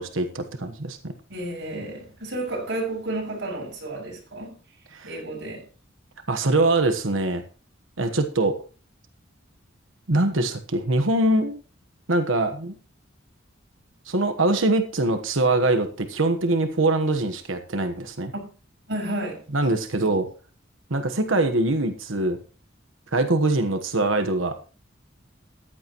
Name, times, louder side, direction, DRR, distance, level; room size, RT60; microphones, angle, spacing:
voice 1, 0.0-1.1 4.9-5.1 6.3-7.4 8.0-8.6 10.1-11.6 12.1-12.8 14.1-18.3 19.5-20.3 20.9-22.4 23.1-24.5, right 2 dB, 80° right, 1.3 m, -23 dB
voice 2, 1.3-4.5 5.0-5.6 18.3-18.4 18.9-19.4 19.9-20.1, right 1 dB, 60° right, 6.4 m, -31 dB
14.5 x 11.0 x 3.0 m
head